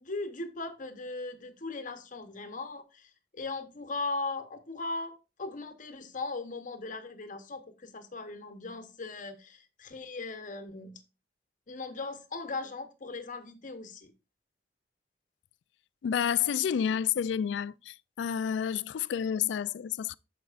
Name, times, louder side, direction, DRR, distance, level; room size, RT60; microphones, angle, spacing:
voice 1, 0.0-11.0 11.7-14.1, left 3 dB, 45° left, 0.9 m, -38 dB
voice 2, 16.0-20.1, left 8 dB, 75° left, 0.3 m, -30 dB
14.5 x 5.3 x 2.4 m
head